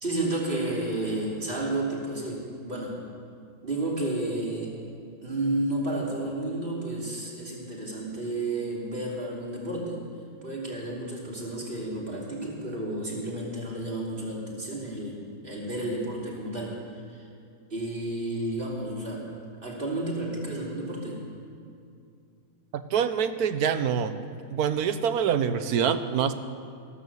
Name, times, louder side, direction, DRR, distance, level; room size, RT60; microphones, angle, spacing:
voice 1, 0.0-3.0 3.6-4.7 5.2-10.0 10.4-15.2 15.4-16.8 17.1-17.2 17.7-19.3 19.6-21.2, right 2 dB, 35° right, -3 dB, 3.1 m, -31 dB
voice 2, 22.7-24.2 24.5-26.3, right 7 dB, 85° right, 11 dB, 1.3 m, -25 dB
14.0 x 12.5 x 6.9 m, 2.4 s
omnidirectional pair, 1.6 m